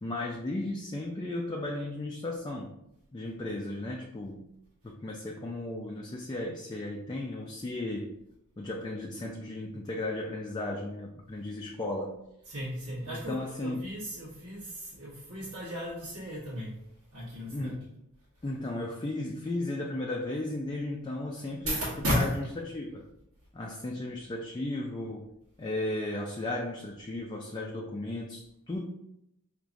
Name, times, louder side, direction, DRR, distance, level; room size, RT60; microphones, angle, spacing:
voice 1, 0.0-2.7 3.1-4.5 4.8-8.2 8.6-12.2 13.1-13.9 17.5-17.8 18.4-23.1 23.5-25.3 25.6-28.8, left 2 dB, 20° left, -1 dB, 0.4 m, -35 dB
voice 2, 12.5-16.8 17.1-17.7 21.6-22.4, equal, 90° right, -11 dB, 1.4 m, -34 dB
4.8 x 2.9 x 2.6 m, 0.82 s
head